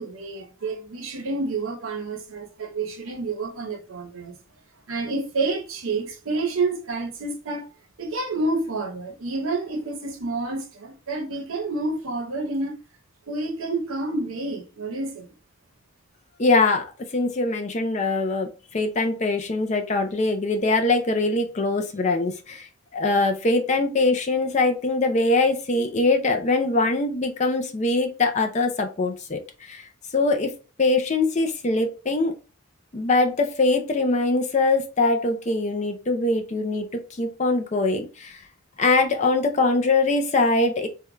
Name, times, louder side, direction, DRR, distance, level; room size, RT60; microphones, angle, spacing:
voice 1, 0.0-4.4 4.9-7.7 8.0-12.8 13.3-15.3, right 3 dB, 70° right, 0.7 m, -29 dB
voice 2, 16.4-16.8 17.1-18.5 18.7-22.6 22.9-29.4 29.7-29.8 30.1-30.5 30.8-32.3 32.9-36.8 37.2-38.3 38.8-40.9, left 3 dB, 30° left, 0.4 m, -22 dB
3.5 x 2.2 x 3.0 m
head